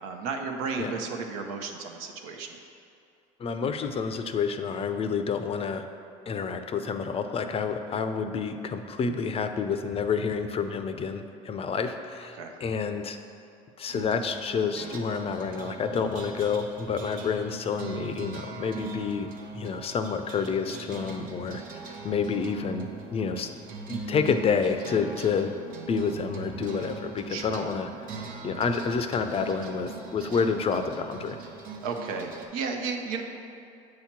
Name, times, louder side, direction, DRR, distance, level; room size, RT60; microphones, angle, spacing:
voice 1, 0.0-2.6 12.3-12.5 27.3-27.6 31.8-33.2, right 4 dB, 80° right, 4 dB, 0.7 m, -33 dB
voice 2, 3.4-5.9 6.3-13.2 13.8-19.3 19.5-21.6 22.0-23.6 23.9-25.5 25.9-27.9 28.4-31.4, left 5 dB, 35° left, 8 dB, 0.5 m, -29 dB
sound 1, 13.9-32.4, right 4 dB, 55° right, 0.9 m, -41 dB
7.7 x 2.9 x 5.9 m, 2.5 s
supercardioid pair, 85°, 17 cm